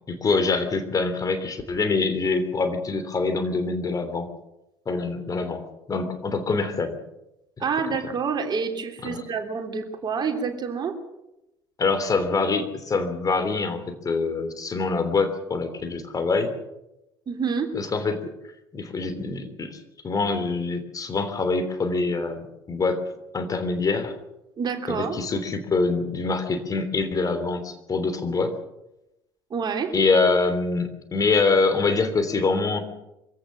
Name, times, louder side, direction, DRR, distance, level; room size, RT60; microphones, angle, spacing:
voice 1, 0.1-4.3 4.8-5.6 5.9-7.0 9.0-9.2 11.8-16.5 17.7-18.3 18.7-23.0 23.3-24.2 24.9-28.5 29.9-32.8, left 3 dB, 30° left, 8 dB, 3.2 m, -25 dB
voice 2, 7.6-11.0 17.3-17.7 24.6-25.2 29.5-29.9, right 5 dB, 35° right, 5 dB, 3.2 m, -28 dB
24.0 x 16.5 x 7.5 m, 0.91 s
figure-of-eight pair, 55°, 12 cm